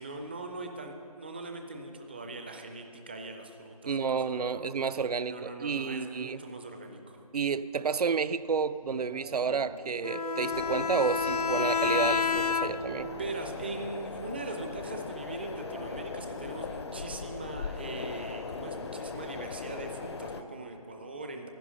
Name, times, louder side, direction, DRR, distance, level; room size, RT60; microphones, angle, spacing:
voice 1, 0.0-4.6 5.2-7.2 13.0-21.5, right 2 dB, 15° right, 4 dB, 0.4 m, -41 dB
voice 2, 3.9-6.4 7.3-13.1, right 5 dB, 80° right, 16 dB, 0.4 m, -30 dB
sound 1, 8.4-11.4 11.6-11.7 12.0-12.1 12.4-12.5 13.7-13.8 15.5-16.4, right 4 dB, 65° right, 1.0 m, -46 dB
Bowed string instrument, 10.0-13.1, left 5 dB, 90° left, 0.6 m, -29 dB
sound 2, 10.5-20.4, left 4 dB, 45° left, 0.5 m, -39 dB
11.5 x 9.7 x 5.5 m, 2.7 s
figure-of-eight pair, 155°, 19 cm